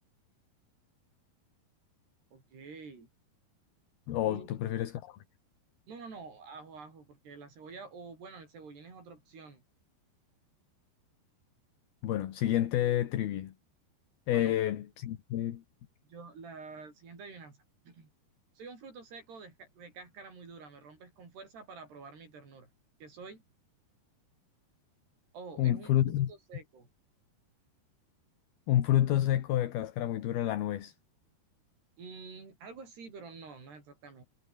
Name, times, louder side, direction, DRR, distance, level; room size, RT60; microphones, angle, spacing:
voice 1, 2.3-3.1 4.3-4.5 5.9-9.6 14.3-14.6 16.0-17.6 17.9-18.1 18.6-22.7 23.0-23.4 25.3-25.9 26.3-26.9 32.0-34.2, right 4 dB, 75° right, 9.1 m, -48 dB
voice 2, 4.1-5.2 12.0-13.5 14.3-15.6 25.6-26.3 28.7-30.9, left 12 dB, 70° left, 3.4 m, -29 dB
omnidirectional pair, 4.8 m